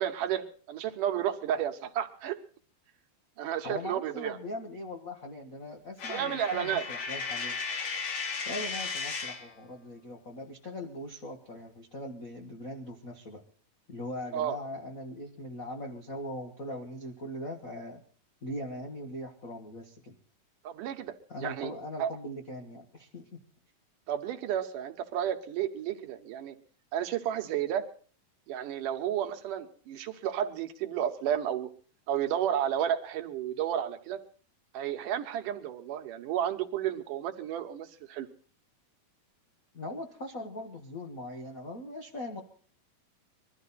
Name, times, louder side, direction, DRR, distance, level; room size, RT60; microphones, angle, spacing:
voice 1, 0.0-2.4 3.4-4.4 6.1-6.8 14.3-14.6 20.6-21.1 21.4-21.7 22.0-22.1 24.1-26.5 26.9-27.9 28.5-31.7 32.1-34.2 34.7-38.3, right 10 dB, 70° right, 7 dB, 2.4 m, -32 dB
voice 2, 3.6-7.6 8.4-13.4 13.9-18.0 18.4-20.2 21.3-23.3 39.7-42.4, left 1 dB, 80° left, 3 dB, 0.7 m, -40 dB
Coin (dropping), 6.0-9.5, left 5 dB, 55° left, 2.9 m, -35 dB
22.0 x 13.0 x 4.1 m, 0.42 s
omnidirectional pair, 4.2 m